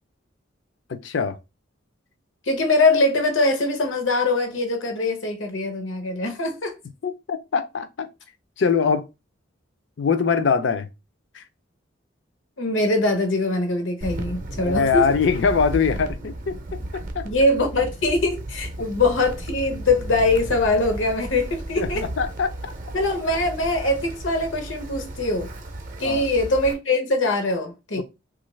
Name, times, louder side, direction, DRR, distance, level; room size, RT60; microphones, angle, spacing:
voice 1, 0.9-1.4 7.0-8.1 8.6-9.1 10.0-10.9 11.3-11.4 14.6-16.6 17.1-17.3 21.8-22.7 26.0-26.2 28.0-28.1, left 5 dB, 65° left, 0.5 m, -22 dB
voice 2, 2.5-6.8 12.6-15.0 17.2-22.1 22.9-25.5 26.0-28.0, left 2 dB, 80° left, 0.8 m, -22 dB
Wind, 14.0-26.7, right 1 dB, 45° right, 0.5 m, -34 dB
3.0 x 2.4 x 3.1 m
head